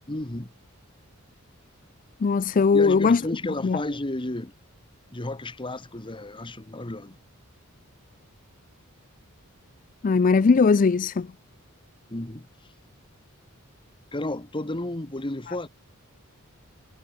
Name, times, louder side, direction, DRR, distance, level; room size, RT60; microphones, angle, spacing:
voice 1, 0.1-0.5 2.7-4.5 5.1-7.2 12.1-12.5 14.1-15.7, left 1 dB, 25° left, 1.5 m, -32 dB
voice 2, 2.2-3.2 3.6-3.8 10.0-11.3, left 4 dB, 40° left, 0.4 m, -19 dB
head